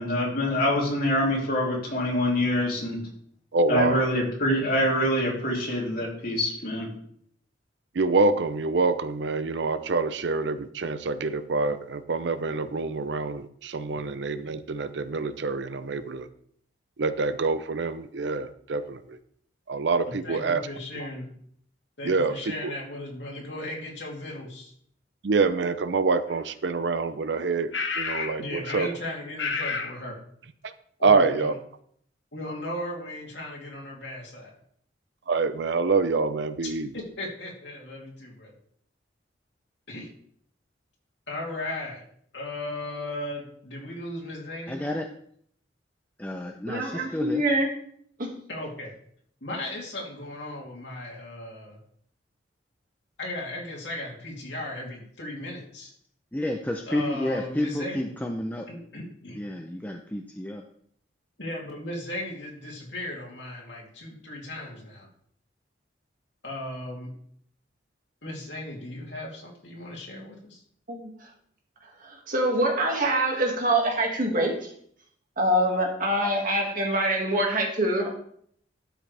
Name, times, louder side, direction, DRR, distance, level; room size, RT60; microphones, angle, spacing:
voice 1, 0.0-3.0 3.7-6.9, left 1 dB, 50° left, -4 dB, 3.2 m, -25 dB
voice 2, 3.5-4.1 7.9-16.3 17.0-19.2 19.7-20.6 22.0-22.7 25.2-28.9 30.6-30.7 31.0-31.5 35.3-36.9, right 4 dB, 70° right, 12 dB, 0.6 m, -26 dB
voice 3, 20.0-21.3 22.0-24.7 28.4-30.1 31.0-31.6 32.3-34.5 36.6-38.5 39.9-40.1 41.3-42.0 42.3-44.8 48.5-48.9 49.4-51.8 53.2-55.9 56.9-58.1 58.7-59.4 61.4-65.1 66.4-67.1 68.2-70.6, left 1 dB, 70° left, -2 dB, 3.0 m, -36 dB
sound 1, 26.3-26.4 27.7-28.4 28.6-28.9 29.4-29.9, left 4 dB, 85° left, 1.3 m, -30 dB
voice 4, 44.7-45.1 46.2-47.4 56.3-58.7 59.3-60.6, left 1 dB, 10° left, 3 dB, 0.5 m, -31 dB
voice 5, 46.7-47.7 48.2-48.4 70.9-71.1 72.3-74.7 75.4-78.1, right 1 dB, 50° right, 1 dB, 2.0 m, -25 dB
12.5 x 6.2 x 3.4 m, 0.64 s
head